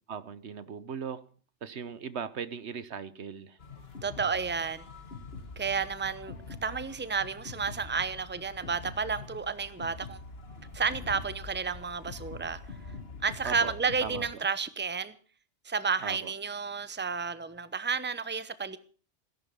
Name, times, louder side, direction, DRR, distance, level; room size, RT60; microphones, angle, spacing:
voice 1, 0.1-1.3 1.6-3.6 13.4-13.7 14.0-14.3 16.0-16.3, right 6 dB, 75° right, 1.3 m, -38 dB
sound 1, 3.6-14.3, left 3 dB, 60° left, 1.9 m, -44 dB
voice 2, 4.0-4.8 5.6-10.2 10.7-12.6 13.2-15.1 15.6-18.8, right 5 dB, 10° right, 0.9 m, -31 dB
17.0 x 11.0 x 6.9 m
omnidirectional pair, 1.1 m